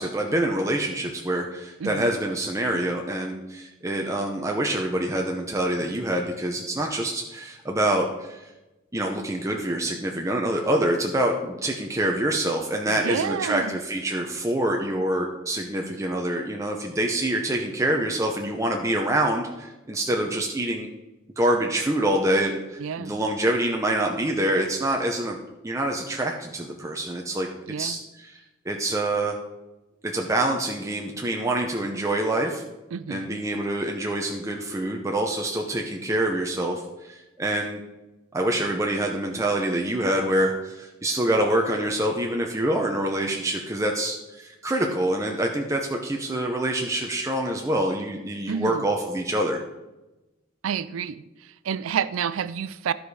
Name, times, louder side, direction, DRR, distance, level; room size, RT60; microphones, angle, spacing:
voice 1, 0.0-8.5 8.9-20.9 21.4-25.4 25.6-27.5 27.8-28.4 28.7-29.4 30.0-32.6 33.1-37.8 38.3-49.6, right 1 dB, 15° right, 1 dB, 0.7 m, -26 dB
voice 2, 12.9-13.8 22.8-23.1 27.7-28.0 32.9-33.3 48.5-48.9 50.6-51.2 51.6-52.9, right 7 dB, 75° right, 16 dB, 0.4 m, -29 dB
13.5 x 5.1 x 4.8 m, 1.0 s
head